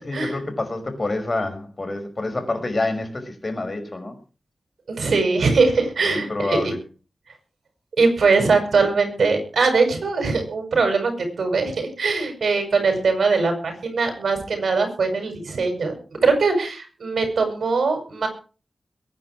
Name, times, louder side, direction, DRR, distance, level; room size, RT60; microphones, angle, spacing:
voice 1, 0.0-4.1 6.0-6.8, left 2 dB, 35° left, 6 dB, 5.4 m, -27 dB
voice 2, 4.9-6.7 8.0-15.9 16.2-18.3, right 4 dB, 80° right, 6 dB, 7.3 m, -21 dB
22.5 x 10.0 x 4.9 m, 0.36 s
wide cardioid pair, 90°, 0 cm